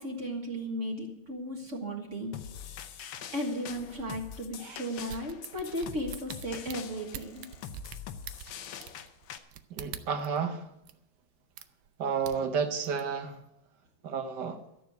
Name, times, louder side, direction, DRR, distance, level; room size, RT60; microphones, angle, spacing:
voice 1, 0.0-2.3 3.3-7.5, equal, 40° right, 1.8 m, -35 dB
sound 1, 2.3-9.4, left 8 dB, 75° left, 1.6 m, -44 dB
sound 2, 5.1-10.4 10.8-10.9 11.6-11.9 12.2-13.0 13.4-13.5, right 11 dB, 85° right, 1.5 m, -44 dB
voice 2, 9.7-10.7 12.0-13.4 14.0-14.6, right 6 dB, 60° right, 1.6 m, -31 dB
13.0 x 6.9 x 9.1 m
omnidirectional pair, 2.2 m